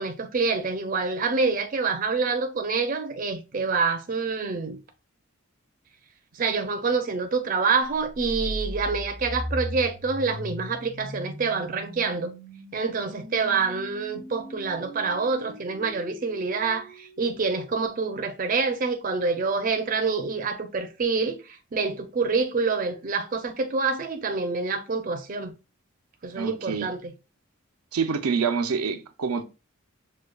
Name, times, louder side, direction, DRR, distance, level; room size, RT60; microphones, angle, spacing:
voice 1, 0.0-4.8 6.3-12.3 12.7-25.5 26.2-27.1, right 4 dB, 40° right, 0.4 m, -27 dB
sound 1, 7.9-17.9, equal, 40° left, 0.7 m, -39 dB
voice 2, 26.3-26.9 27.9-29.4, right 5 dB, 90° right, 0.5 m, -26 dB
6.3 x 2.3 x 2.2 m
head